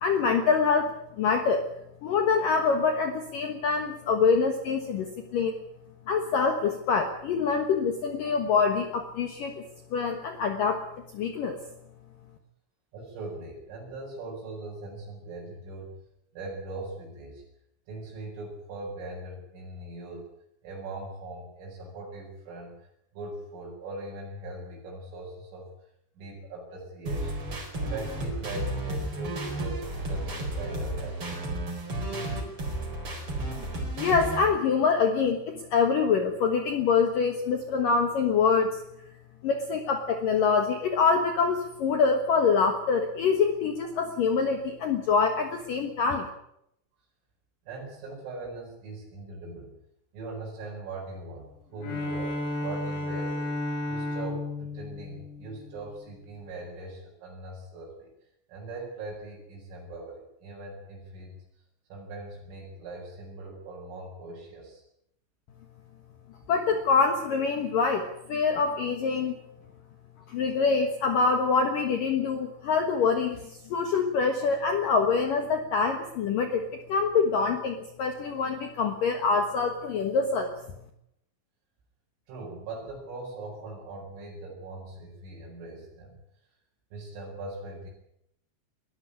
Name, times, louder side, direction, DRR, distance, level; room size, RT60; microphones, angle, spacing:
voice 1, 0.0-1.7 2.0-5.6 6.1-9.6 9.9-10.8 11.1-11.6 34.0-38.7 39.4-46.3 66.5-69.4 70.3-80.5, left 5 dB, 70° left, 6 dB, 2.1 m, -25 dB
voice 2, 12.9-16.0 16.3-17.4 17.9-20.3 20.6-22.7 23.1-25.7 26.2-27.4 27.8-31.6 47.7-49.7 50.1-53.5 53.9-58.1 58.5-61.4 61.9-64.8 82.3-86.2 86.9-87.9, right 2 dB, 75° right, -4 dB, 7.5 m, -40 dB
sound 1, 27.1-34.5, right 1 dB, 25° right, 4.9 m, -32 dB
Bowed string instrument, 51.8-56.1, left 1 dB, 85° left, 7.0 m, -33 dB
22.0 x 13.5 x 9.9 m, 0.78 s
omnidirectional pair, 6.0 m